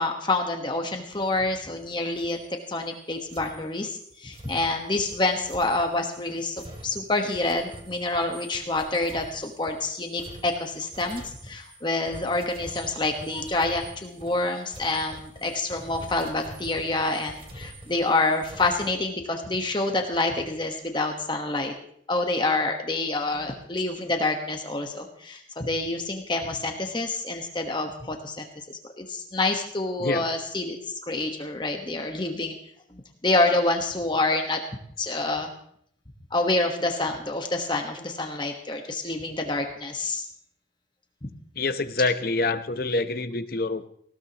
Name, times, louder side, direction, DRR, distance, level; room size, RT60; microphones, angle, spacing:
voice 1, 0.0-21.7 22.1-32.5 32.9-34.6 35.0-35.5 36.3-40.2, left 2 dB, 25° left, 3 dB, 1.3 m, -27 dB
sound 1, 1.1-1.9 2.2-2.5 3.3-18.9, right 1 dB, 30° right, 2.3 m, -46 dB
voice 2, 41.6-43.9, left 3 dB, 50° left, 9 dB, 0.9 m, -26 dB
19.0 x 17.0 x 3.0 m, 0.67 s
head